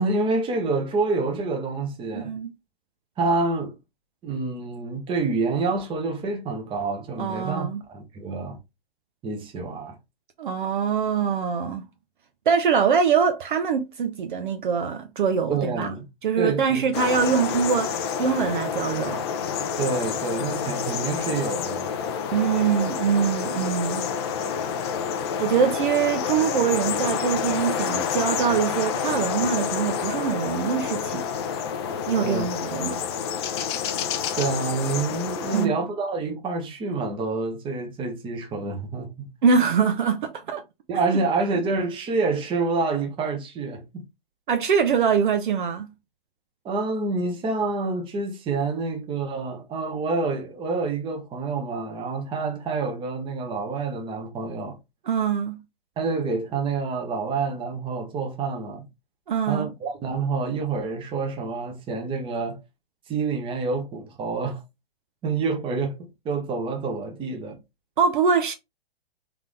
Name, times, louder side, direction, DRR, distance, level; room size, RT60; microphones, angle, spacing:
voice 1, 0.0-2.3 3.2-3.7 4.2-8.6 9.2-10.0 15.5-16.0 16.4-16.8 19.8-21.9 32.2-32.4 34.3-39.3 40.9-44.0 46.6-54.8 56.0-58.8 59.5-62.6 63.1-64.6 65.2-66.0 66.2-67.6, right 3 dB, 15° right, 1.1 m, -27 dB
voice 2, 2.1-2.5 7.2-7.8 10.4-11.8 12.5-15.9 16.2-19.2 22.3-24.1 25.4-31.2 32.1-33.0 35.5-35.8 39.4-40.6 44.5-45.9 55.0-55.6 59.3-59.7 68.0-68.5, right 6 dB, 50° right, 0.7 m, -23 dB
sound 1, 16.9-35.7, left 7 dB, 25° left, 0.4 m, -28 dB
3.9 x 3.5 x 3.2 m
figure-of-eight pair, 115°, 31 cm